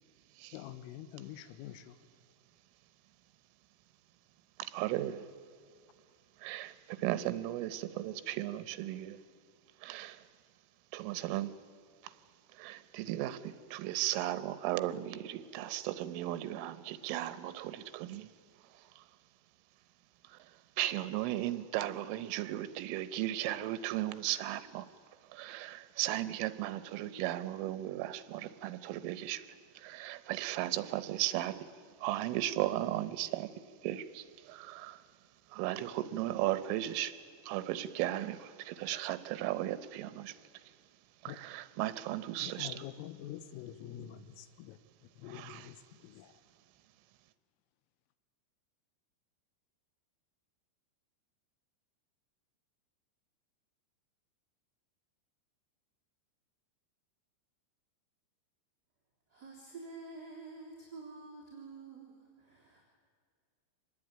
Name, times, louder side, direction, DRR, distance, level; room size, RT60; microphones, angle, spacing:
voice 1, 0.5-2.1 41.3-41.5 42.4-44.8 45.2-46.3, left 11 dB, 90° left, 3.6 m, -46 dB
voice 2, 4.6-5.3 6.4-9.2 9.8-10.2 10.9-11.5 12.0-12.1 12.5-18.3 18.8-19.0 20.3-24.9 25.3-29.5 29.7-31.7 32.0-33.5 33.8-35.0 35.5-37.2 37.4-40.4 41.2-42.8 45.3-45.7, right 14 dB, 80° right, 3.4 m, -36 dB
voice 3, 59.3-62.8, right 3 dB, 20° right, 3.6 m, -49 dB
26.0 x 20.0 x 8.9 m
omnidirectional pair, 5.8 m